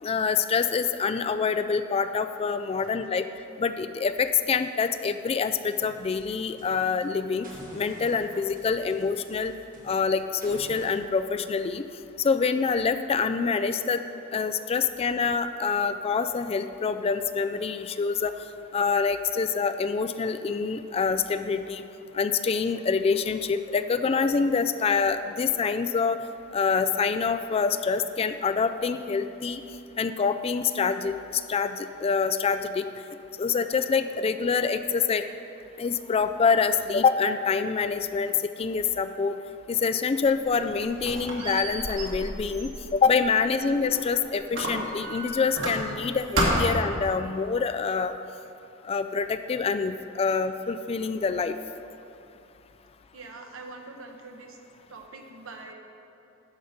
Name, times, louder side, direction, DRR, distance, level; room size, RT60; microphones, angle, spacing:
voice 1, 0.0-3.3 3.6-7.5 7.7-9.5 9.8-11.8 12.2-14.0 14.3-18.3 18.7-21.8 22.1-26.2 26.5-29.6 30.0-32.8 33.4-35.2 35.8-39.4 39.7-48.1 48.9-51.5, left 5 dB, 30° left, 10 dB, 0.3 m, -26 dB
sound 1, 5.6-7.0 7.4-11.0, right 1 dB, 45° right, 1.4 m, -48 dB
Squeak, 40.3-44.1 44.5-46.1 46.3-46.9, right 1 dB, 60° right, 1.9 m, -30 dB
voice 2, 53.1-54.6 54.9-55.7, right 3 dB, 80° right, 3 dB, 1.1 m, -43 dB
11.0 x 5.1 x 6.6 m, 2.7 s
head